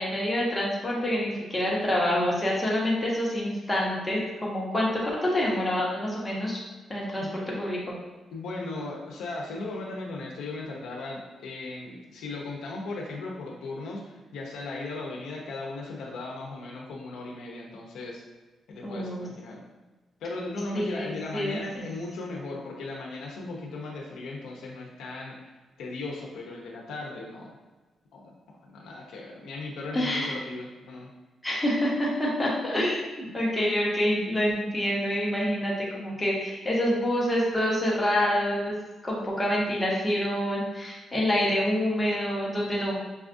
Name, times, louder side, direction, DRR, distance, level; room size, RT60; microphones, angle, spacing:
voice 1, 0.0-6.6 6.9-7.9 18.8-19.3 20.7-21.6 29.9-30.3 31.4-38.8 39.0-43.0, equal, 15° left, -5 dB, 1.0 m, -27 dB
voice 2, 8.3-14.0 14.3-18.2 18.7-19.6 20.2-25.5 25.8-27.5 28.1-31.1, left 2 dB, 90° left, -1 dB, 0.6 m, -37 dB
5.4 x 2.4 x 2.6 m, 1.2 s
cardioid pair, 100°, 0 cm